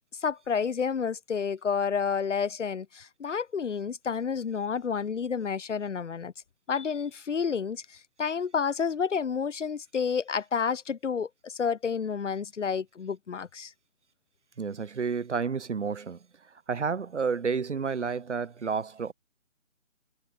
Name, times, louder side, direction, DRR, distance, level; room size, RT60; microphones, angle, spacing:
voice 1, 0.2-6.3 6.7-13.7, left 6 dB, 65° left, 0.9 m, -30 dB
voice 2, 14.6-16.2 16.7-19.1, right 5 dB, 60° right, 1.5 m, -30 dB
figure-of-eight pair, 160°, 40 cm